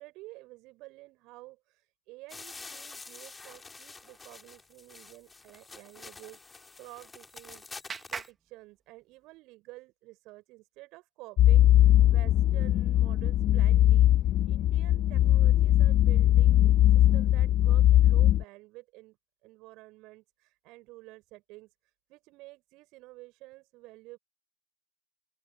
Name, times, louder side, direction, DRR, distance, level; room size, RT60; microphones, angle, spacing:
voice 1, 0.0-16.6 16.9-19.2 19.4-24.2, right 21 dB, 40° right, 6.4 m, -50 dB
sound 1, 2.3-8.3, left 3 dB, 10° left, 5.8 m, -48 dB
Clapping, 6.8-9.4, right 5 dB, 15° right, 2.7 m, -45 dB
sound 2, 11.4-18.4, left 13 dB, 30° left, 0.6 m, -21 dB
open air
figure-of-eight pair, 90°, 0 cm